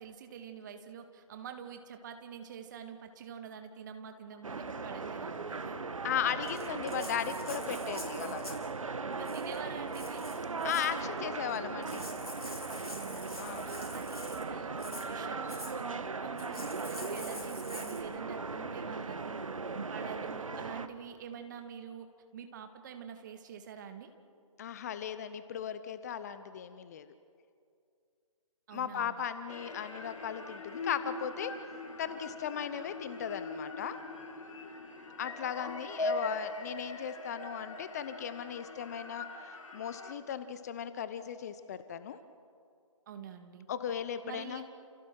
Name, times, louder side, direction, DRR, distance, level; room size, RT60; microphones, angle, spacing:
voice 1, 0.0-5.8 9.1-10.4 12.9-19.4 19.7-22.1 22.3-24.1 28.7-29.3 43.1-43.7 44.2-44.6, right 7 dB, 35° right, 6 dB, 1.9 m, -46 dB
sound 1, 4.4-20.9, right 4 dB, 65° right, 1.4 m, -38 dB
voice 2, 6.0-8.6 10.6-12.1 13.4-13.7 24.6-27.1 28.7-31.5 32.0-34.0 35.2-42.2 43.7-44.6, left 9 dB, 30° left, 13 dB, 0.8 m, -37 dB
Rattle (instrument), 6.4-8.7 9.2-9.6 9.9-11.0 11.5-11.6 11.8-14.5 14.8-15.1 15.5-15.8 16.4-18.0, left 2 dB, 85° left, 4.0 m, -47 dB
sound 2, 29.5-40.1, left 2 dB, 65° left, 3.1 m, -41 dB
29.0 x 28.5 x 4.7 m, 2.4 s
figure-of-eight pair, 140°, 18 cm